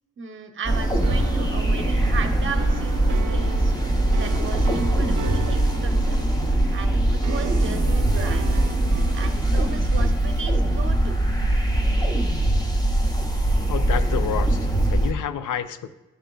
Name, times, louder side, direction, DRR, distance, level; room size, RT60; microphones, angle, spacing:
voice 1, 0.2-3.7 4.1-6.2 6.7-8.5 9.1-11.2, right 5 dB, 40° right, 4 dB, 0.8 m, -35 dB
sound 1, 0.6-15.1, right 1 dB, 15° left, 0.7 m, -22 dB
sound 2, 1.0-9.3, right 7 dB, 75° right, 0.5 m, -37 dB
voice 2, 13.7-15.9, left 9 dB, 80° left, 11 dB, 0.5 m, -29 dB
11.5 x 5.0 x 2.3 m, 1.1 s
wide cardioid pair, 115°, 31 cm